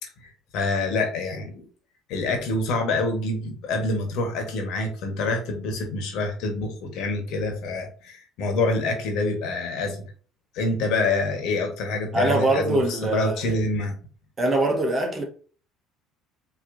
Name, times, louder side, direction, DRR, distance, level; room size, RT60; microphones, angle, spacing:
voice 1, 0.2-1.6 2.1-10.1 10.5-14.0, left 2 dB, 70° left, 1.3 m, -26 dB
voice 2, 12.1-13.6 14.4-15.2, right 2 dB, 30° right, 1.2 m, -23 dB
4.6 x 3.0 x 2.7 m
supercardioid pair, 90°, 0 cm